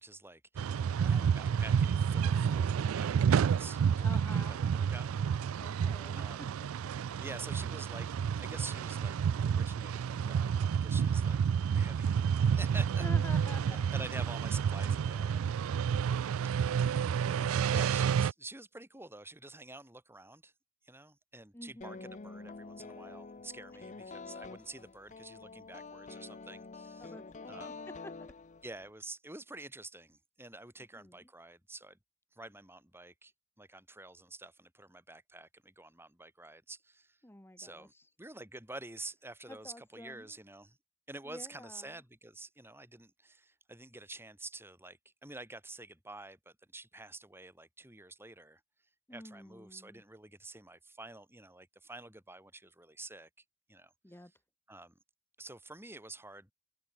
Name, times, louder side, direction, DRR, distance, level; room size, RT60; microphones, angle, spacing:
voice 1, 0.0-5.7 6.1-6.6 6.9-8.1 8.4-10.5 10.8-11.4 11.7-13.1 13.4-15.5 16.6-17.0 17.3-20.5 20.8-27.1 27.5-27.8 28.6-32.0 32.3-33.3 33.6-37.2 37.6-37.9 38.2-40.8 41.1-48.6 49.1-53.3 53.7-54.4 54.7-55.0 55.4-56.5, right 2 dB, 10° right, 4.3 m, -48 dB
sound 1, 0.6-18.3, right 7 dB, 75° right, 0.3 m, -30 dB
voice 2, 0.9-1.4 4.0-4.6 5.6-6.2 6.8-6.9 13.0-13.8 16.9-17.0 17.3-17.7 21.5-22.2 27.0-28.1 31.0-31.2 37.2-38.1 39.5-40.3 41.3-41.9 49.1-50.0 54.0-54.3, left 1 dB, 10° left, 1.3 m, -50 dB
sound 2, 21.8-28.9, left 4 dB, 35° left, 0.7 m, -47 dB
open air
head